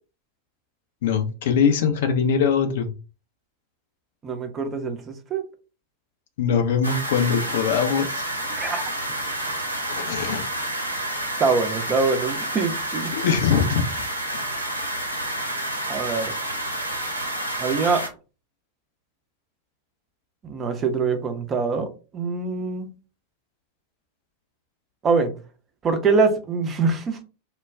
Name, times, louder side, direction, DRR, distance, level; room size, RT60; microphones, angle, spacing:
voice 1, 1.0-2.9 6.4-8.2 10.0-10.4 13.1-13.8 14.3-14.4, left 6 dB, 55° left, 0.6 m, -22 dB
voice 2, 4.2-5.4 8.6-8.8 11.4-13.1 15.9-16.3 17.6-18.0 20.4-22.9 25.0-25.3 25.8-27.2, right 4 dB, 25° right, 0.6 m, -24 dB
sound 1, 6.8-18.1, right 1 dB, 85° right, 0.7 m, -29 dB
2.2 x 2.2 x 3.4 m
figure-of-eight pair, 90°, 0 cm